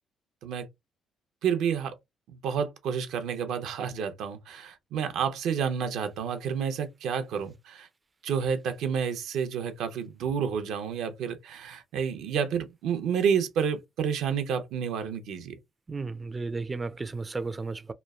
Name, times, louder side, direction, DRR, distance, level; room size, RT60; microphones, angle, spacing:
voice 1, 1.4-1.9 2.3-7.9 8.2-15.5, right 7 dB, 85° right, 0.6 m, -30 dB
voice 2, 15.9-17.9, right 3 dB, 25° right, 0.3 m, -34 dB
3.0 x 2.3 x 2.3 m
cardioid pair, 90°, 0 cm